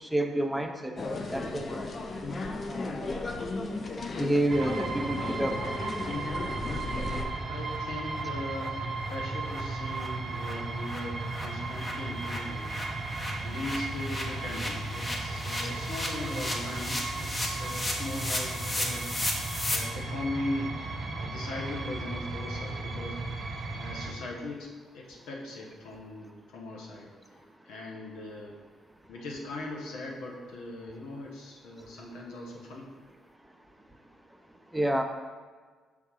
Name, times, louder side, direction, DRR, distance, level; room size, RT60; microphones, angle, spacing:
voice 1, 0.0-1.8 2.7-3.2 4.2-5.6 34.7-35.0, right 1 dB, 5° right, 4 dB, 0.5 m, -29 dB
sound 1, 1.0-7.3, left 3 dB, 40° left, 0.6 m, -35 dB
rise of the guitar- B a R K M a T T E R, 4.5-24.1, right 3 dB, 40° right, 0.7 m, -35 dB
sound 2, 6.8-6.9 7.2-7.3 7.7-7.8 8.1-8.2 8.6-8.7 9.0-9.1 9.5-9.6 9.9-19.8, left 1 dB, 25° left, 0.9 m, -36 dB
voice 2, 7.4-12.7 13.4-19.1 19.7-20.7 21.1-23.4 23.7-27.1 27.6-28.6 29.1-32.9, left 2 dB, 85° left, -1 dB, 1.1 m, -39 dB
5.8 x 3.5 x 4.8 m, 1.5 s
cardioid pair, 90°, 0 cm